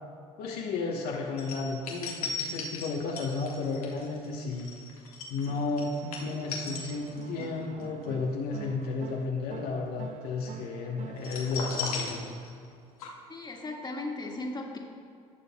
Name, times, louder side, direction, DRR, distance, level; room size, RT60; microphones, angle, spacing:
voice 1, 0.4-4.7 5.3-12.4, left 3 dB, 60° left, -2 dB, 1.2 m, -33 dB
sound 1, 1.4-7.5 7.8-8.0 11.2-12.7 13.0-13.1, left 4 dB, 85° left, 1.4 m, -37 dB
sound 2, 5.5-12.4, right 8 dB, 45° right, 0.6 m, -46 dB
voice 2, 13.3-14.8, left 2 dB, 25° left, -1 dB, 1.9 m, -36 dB
19.0 x 6.7 x 2.3 m, 2.3 s
hypercardioid pair, 60°, 18 cm